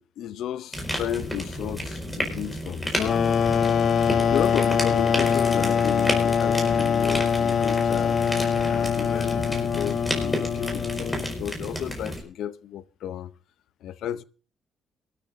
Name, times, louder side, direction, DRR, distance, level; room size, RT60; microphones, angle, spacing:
voice 1, 0.0-3.2 4.3-8.2 8.6-13.3 13.8-14.2, left 10 dB, 80° left, 0.6 m, -33 dB
sound 1, 0.7-12.2, equal, 10° left, 4.9 m, -32 dB
sound 2, 3.0-11.5, left 7 dB, 60° left, 0.9 m, -23 dB
23.0 x 13.0 x 2.6 m
cardioid pair, 90°, 0 cm